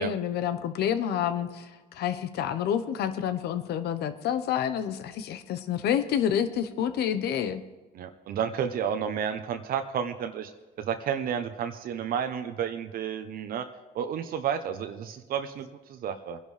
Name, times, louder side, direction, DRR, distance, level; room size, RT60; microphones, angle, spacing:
voice 1, 0.0-7.6, left 9 dB, 70° left, 11 dB, 0.9 m, -28 dB
voice 2, 7.9-10.5 10.8-13.7 13.9-16.4, right 8 dB, 60° right, 7 dB, 0.8 m, -31 dB
22.0 x 10.5 x 3.3 m, 1.2 s
cardioid pair, 110°, 17 cm